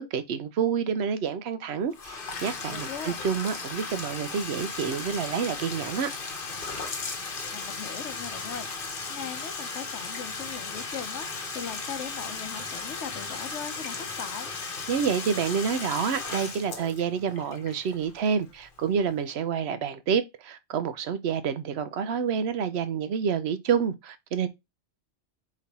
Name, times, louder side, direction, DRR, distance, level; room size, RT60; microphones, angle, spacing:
voice 1, 0.0-6.1 14.9-24.5, right 7 dB, 70° right, 0.8 m, -28 dB
Bathtub (filling or washing), 1.9-18.6, left 4 dB, 50° left, 1.1 m, -36 dB
voice 2, 2.7-3.2 7.5-14.6, left 7 dB, 80° left, 1.1 m, -39 dB
4.2 x 3.1 x 4.1 m
omnidirectional pair, 1.2 m